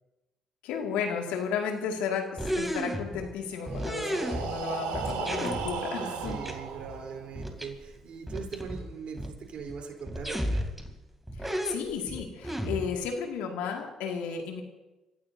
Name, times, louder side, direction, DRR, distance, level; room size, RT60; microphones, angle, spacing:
voice 1, 0.6-6.4 11.4-14.6, left 6 dB, 75° left, 2 dB, 2.3 m, -33 dB
sound 1, 2.4-3.4 3.7-4.7 4.9-5.8 6.2-6.5 6.9-7.0 7.4-7.7 8.0-8.1 8.3-9.4 9.7-9.8 10.1-11.0 11.3-13.1, equal, 5° right, 3.1 m, -33 dB
Breathing, 3.6-7.4, right 6 dB, 80° right, 2.1 m, -36 dB
voice 2, 6.0-10.7, right 6 dB, 60° right, 2 dB, 3.8 m, -41 dB
29.0 x 15.5 x 2.8 m, 1.1 s
hypercardioid pair, 50°, 2 cm